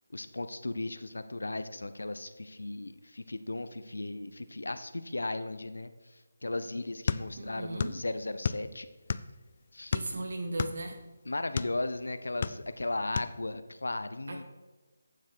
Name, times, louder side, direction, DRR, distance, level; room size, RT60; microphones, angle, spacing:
voice 1, 0.1-8.9 9.7-9.9 11.3-14.4, left 2 dB, 85° left, 11 dB, 0.7 m, -36 dB
sound 1, 7.1-8.0 8.3-9.4 9.9-11.8 12.2-12.9 13.2-13.3, left 5 dB, 45° left, 0.4 m, -32 dB
voice 2, 7.4-7.9 9.9-11.0 14.3-14.4, right 2 dB, 60° right, 3 dB, 1.9 m, -36 dB
9.0 x 7.5 x 4.6 m, 1.2 s
figure-of-eight pair, 160°, 0 cm